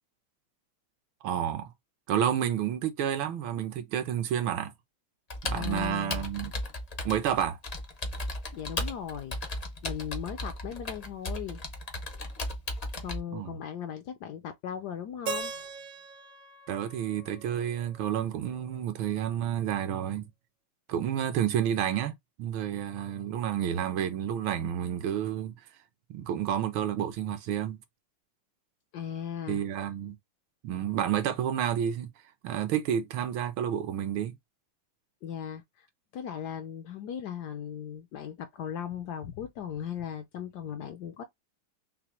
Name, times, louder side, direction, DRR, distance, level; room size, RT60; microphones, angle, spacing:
voice 1, 1.2-1.7 2.1-4.7 5.4-6.5 7.0-7.6 13.3-13.6 16.7-20.3 20.9-22.1 22.4-25.5 26.1-27.8 29.5-30.2 30.6-32.1 32.4-34.3, right 9 dB, 85° right, 1.6 m, -30 dB
Computer keyboard, 5.3-13.2, left 1 dB, 55° left, 0.4 m, -36 dB
voice 2, 5.5-6.3 8.5-9.4 9.8-11.6 13.0-15.5 28.9-29.6 35.2-35.9 36.1-41.2, left 9 dB, 75° left, 0.9 m, -37 dB
Keyboard (musical), 15.3-18.2, right 4 dB, 70° right, 0.7 m, -40 dB
5.9 x 2.0 x 2.9 m
omnidirectional pair, 2.2 m